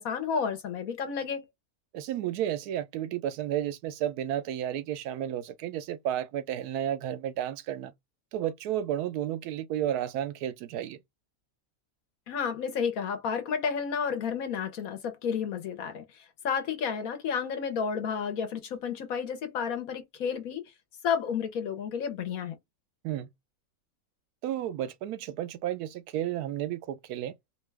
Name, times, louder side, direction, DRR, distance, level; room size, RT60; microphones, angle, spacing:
voice 1, 0.0-1.4 12.3-20.6 21.0-22.6, left 6 dB, 70° left, 1.2 m, -31 dB
voice 2, 1.9-7.9 8.3-11.0 23.0-23.3 24.4-27.3, right 11 dB, 85° right, 1.1 m, -32 dB
2.9 x 2.3 x 3.2 m
omnidirectional pair, 1.6 m